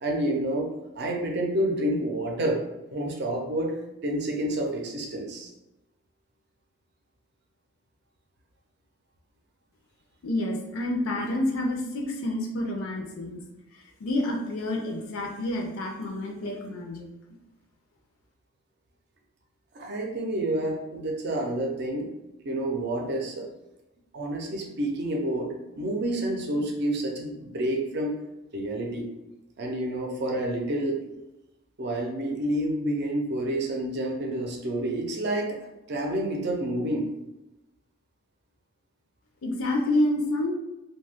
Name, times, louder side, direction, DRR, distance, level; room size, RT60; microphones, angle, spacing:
voice 1, 0.0-2.6 2.9-5.5 19.7-22.1 22.4-23.5 24.1-28.1 28.5-29.1 29.6-31.0 31.8-35.6 35.9-37.1, right 1 dB, 50° right, 1 dB, 0.5 m, -29 dB
voice 2, 10.2-13.4 14.0-17.1 39.4-40.5, left 1 dB, 80° left, 2 dB, 0.5 m, -28 dB
2.7 x 2.2 x 3.4 m, 1.0 s
head